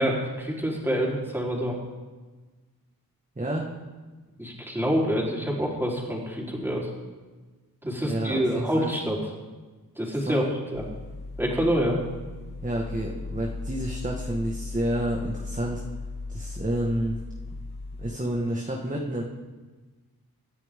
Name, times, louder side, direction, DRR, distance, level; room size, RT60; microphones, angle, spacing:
voice 1, 0.0-1.8 4.4-6.9 7.8-9.2 10.0-10.4 10.7-10.8 11.4-12.0, equal, 5° right, -4 dB, 4.2 m, -26 dB
voice 2, 3.3-3.7 8.0-8.9 10.2-10.5 12.6-15.8 16.3-17.2 18.0-19.2, right 1 dB, 20° right, -1 dB, 1.7 m, -29 dB
sound 1, 10.7-18.1, left 3 dB, 85° left, 1.9 m, -37 dB
26.0 x 10.0 x 3.8 m, 1.3 s
wide cardioid pair, 85°, 37 cm